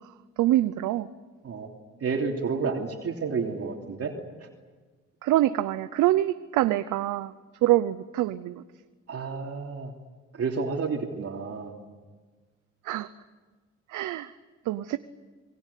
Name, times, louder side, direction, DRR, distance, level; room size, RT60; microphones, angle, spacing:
voice 1, 0.4-1.1 5.2-7.3 7.6-8.6 12.8-13.1 13.9-14.3 14.7-15.0, right 15 dB, 90° right, 12 dB, 0.8 m, -25 dB
voice 2, 2.0-4.1 4.4-4.5 9.1-9.9 10.4-11.8, right 5 dB, 50° right, 2 dB, 3.1 m, -30 dB
27.5 x 20.5 x 8.5 m, 1.4 s
cardioid pair, 90°, 30 cm